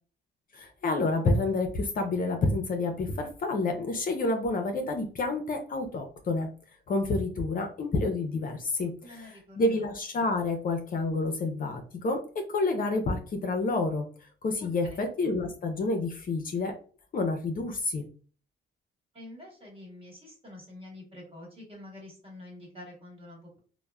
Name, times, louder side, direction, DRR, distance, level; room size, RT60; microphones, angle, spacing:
voice 1, 0.5-6.5 6.9-8.9 9.6-12.2 12.5-14.0 14.4-16.7 17.1-18.0, left 2 dB, 45° left, 4 dB, 0.5 m, -28 dB
voice 2, 9.0-9.8 14.6-15.1 19.1-23.6, left 1 dB, 30° right, -2 dB, 1.4 m, -47 dB
2.9 x 2.0 x 2.2 m, 0.40 s
cardioid pair, 90°, 20 cm